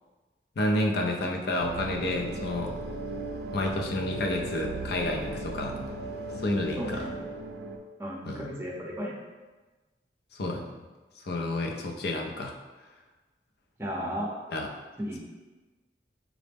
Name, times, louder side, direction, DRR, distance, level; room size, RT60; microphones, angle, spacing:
voice 1, 0.6-2.7 3.5-5.8 6.4-7.0 8.3-8.5 10.4-10.7 11.2-12.5 14.5-14.7, left 1 dB, 60° left, 1 dB, 0.5 m, -30 dB
sound 1, 1.5-7.8, right 2 dB, 65° right, 0.4 m, -36 dB
voice 2, 6.8-7.2 8.0-9.2 13.8-14.3 15.0-15.2, equal, 15° right, -2 dB, 0.6 m, -34 dB
4.8 x 2.1 x 3.4 m, 1.2 s
head